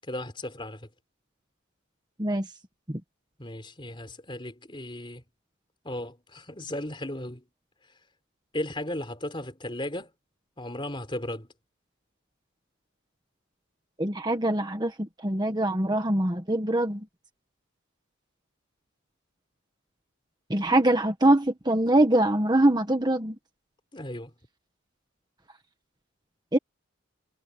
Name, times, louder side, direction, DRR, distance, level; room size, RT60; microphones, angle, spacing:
voice 1, 0.0-0.9 3.4-5.2 5.8-7.5 8.5-10.1 10.6-11.5 23.9-24.3, left 1 dB, 25° left, 3.9 m, -35 dB
voice 2, 14.0-17.0 20.5-23.3 26.5-26.6, right 1 dB, 20° right, 1.4 m, -23 dB
head